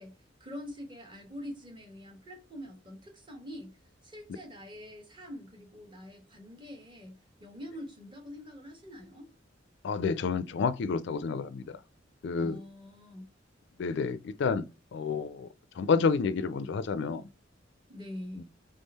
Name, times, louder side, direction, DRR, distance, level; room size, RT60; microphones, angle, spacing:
voice 1, 0.0-9.3 12.3-13.3 17.9-18.4, left 1 dB, 25° right, 1.2 m, -45 dB
voice 2, 9.8-11.8 12.2-12.6 13.8-14.7 14.9-15.5 15.8-17.3 18.4-18.5, left 5 dB, 65° left, 0.4 m, -29 dB
3.6 x 3.4 x 4.1 m
head